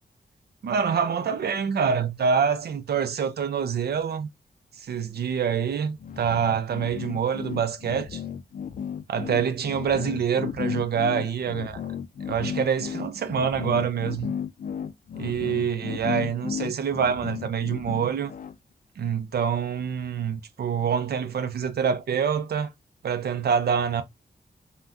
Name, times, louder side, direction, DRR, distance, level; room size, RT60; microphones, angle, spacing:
voice 1, 0.6-4.3 4.8-8.2 9.1-11.8 12.3-14.3 15.2-18.3 19.0-22.7 23.0-24.0, right 7 dB, 70° right, 0.5 m, -26 dB
sound 1, 6.0-18.5, left 8 dB, 55° left, 0.4 m, -34 dB
3.5 x 2.2 x 2.5 m
wide cardioid pair, 120°, 17 cm